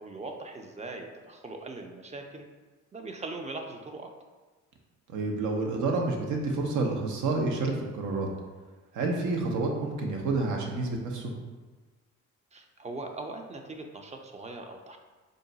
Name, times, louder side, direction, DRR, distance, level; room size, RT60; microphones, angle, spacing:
voice 1, 0.0-2.5 2.9-4.1 12.5-15.0, right 2 dB, 25° right, 4 dB, 0.4 m, -40 dB
voice 2, 5.1-8.3 8.9-11.3, right 3 dB, 75° right, 1 dB, 0.7 m, -29 dB
3.8 x 2.2 x 3.8 m, 1.3 s
cardioid pair, 90°, 30 cm